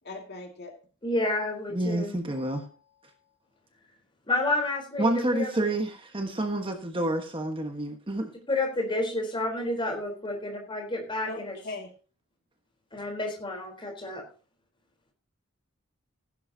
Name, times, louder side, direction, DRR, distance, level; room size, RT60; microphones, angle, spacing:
voice 1, 0.0-0.8 11.2-11.9, left 2 dB, 50° left, 2.3 m, -39 dB
voice 2, 1.0-2.2 4.3-5.7 8.5-11.6 12.9-14.2, left 2 dB, 25° left, 3.9 m, -30 dB
voice 3, 1.7-2.7 5.0-8.3, right 1 dB, 25° right, 1.4 m, -28 dB
16.0 x 11.0 x 2.8 m
head